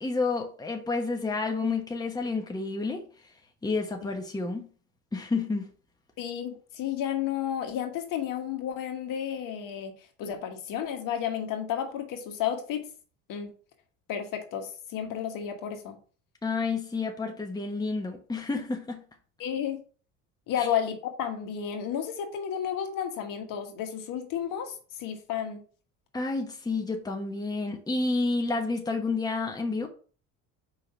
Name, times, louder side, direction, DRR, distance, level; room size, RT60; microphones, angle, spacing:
voice 1, 0.0-3.0 3.6-4.7 5.1-5.7 16.4-19.0 20.6-20.7 26.1-29.9, left 3 dB, 10° left, 1.1 m, -30 dB
voice 2, 6.2-9.9 10.2-12.8 13.3-13.5 14.1-16.0 19.4-19.8 20.5-25.6, left 9 dB, 65° left, 1.5 m, -32 dB
4.9 x 3.8 x 5.7 m
supercardioid pair, 105°, 35 cm